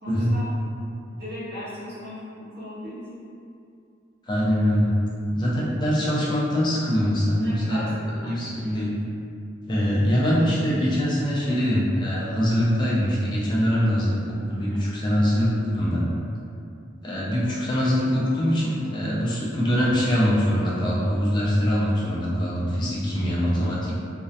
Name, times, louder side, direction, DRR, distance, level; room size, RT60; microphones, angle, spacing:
voice 1, 0.0-0.5 1.1-3.2 7.4-8.8 14.6-14.9 17.3-17.6, left 1 dB, 50° right, -12 dB, 1.1 m, -38 dB
voice 2, 4.3-5.0 5.3-7.8 8.2-8.9 9.7-16.1 17.0-24.0, equal, 20° left, -7 dB, 0.4 m, -23 dB
2.4 x 2.1 x 2.6 m, 2.5 s
head